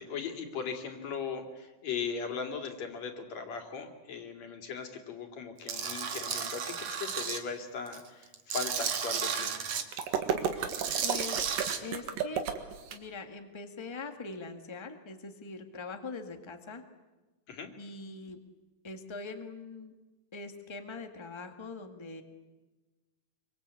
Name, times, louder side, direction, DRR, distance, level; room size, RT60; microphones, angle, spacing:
voice 1, 0.0-9.5 17.5-17.7, left 6 dB, 55° left, 4 dB, 3.6 m, -38 dB
Tools, 5.7-7.4 7.9-9.8 10.6-11.8, right 7 dB, 55° right, 2.7 m, -33 dB
sound 1, 9.9-13.0, right 8 dB, 85° right, 3.4 m, -32 dB
voice 2, 11.0-11.5 11.8-12.5 12.9-16.8 17.8-18.4 18.8-19.9 20.3-22.2, left 3 dB, 15° left, 5 dB, 1.0 m, -42 dB
26.5 x 24.5 x 8.4 m, 1.2 s
omnidirectional pair, 3.8 m